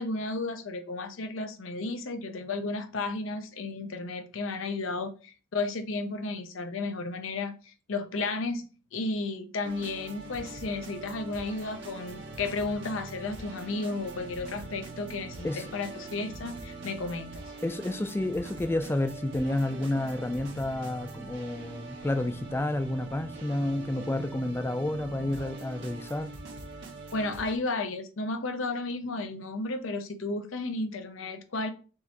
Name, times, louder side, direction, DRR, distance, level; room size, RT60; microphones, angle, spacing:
voice 1, 0.0-17.4 27.1-31.7, left 3 dB, 75° left, 0.6 m, -33 dB
sound 1, 9.6-27.6, right 3 dB, 65° right, 1.2 m, -43 dB
voice 2, 17.6-26.3, left 1 dB, 10° left, 0.4 m, -30 dB
4.5 x 3.0 x 3.3 m
head